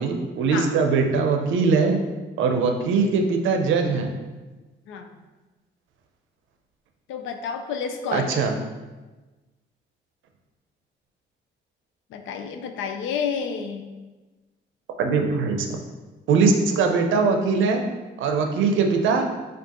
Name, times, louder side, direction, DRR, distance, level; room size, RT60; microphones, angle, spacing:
voice 1, 0.0-2.0 2.4-4.1 8.1-8.5 15.0-15.8 16.3-17.8 18.2-19.3, right 4 dB, 80° right, 4 dB, 0.5 m, -21 dB
voice 2, 7.1-8.4 12.1-13.9, left 6 dB, 80° left, 6 dB, 0.4 m, -30 dB
4.4 x 2.4 x 2.9 m, 1.2 s
cardioid pair, 90°, 20 cm